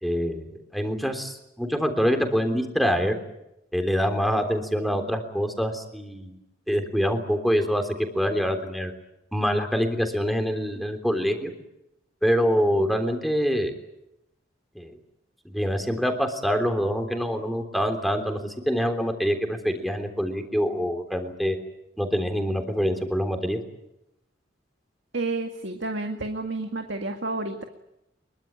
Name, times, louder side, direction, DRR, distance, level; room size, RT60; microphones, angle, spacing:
voice 1, 0.0-0.5 0.7-3.2 3.7-6.3 6.7-8.9 9.3-11.5 12.2-13.7 14.8-14.9 15.5-21.6 22.0-23.6, equal, ahead, 5 dB, 3.4 m, -25 dB
voice 2, 25.1-27.6, right 2 dB, 70° right, 4 dB, 2.0 m, -30 dB
24.5 x 23.0 x 8.9 m, 0.86 s
head